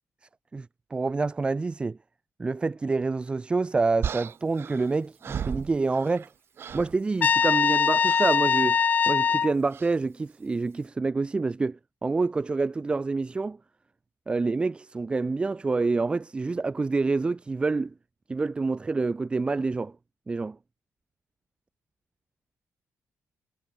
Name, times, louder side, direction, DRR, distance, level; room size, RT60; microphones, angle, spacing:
voice 1, 0.5-2.0 2.4-6.3 6.7-8.8 9.1-13.6 14.3-17.9 18.3-19.9 20.3-20.6, right 3 dB, 20° right, 0.8 m, -27 dB
sound 1, 4.0-6.3 6.6-7.0 8.0-8.4 9.7-10.0, right 8 dB, 45° right, 1.9 m, -35 dB
Trumpet, 7.2-9.5, left 6 dB, 30° left, 0.4 m, -22 dB
cardioid pair, 165°, 6 cm